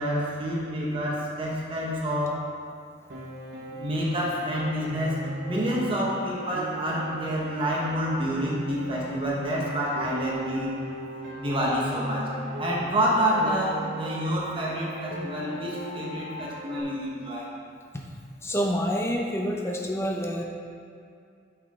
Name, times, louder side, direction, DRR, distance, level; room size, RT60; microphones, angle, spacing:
voice 1, 0.0-2.5 3.7-10.8 11.4-12.3 12.6-17.5, equal, 30° right, -4 dB, 1.4 m, -28 dB
Piano, 3.1-16.8, right 1 dB, 80° right, 1.2 m, -38 dB
voice 2, 18.4-20.4, equal, 15° left, 0 dB, 0.8 m, -27 dB
7.9 x 6.0 x 3.8 m, 2.3 s
head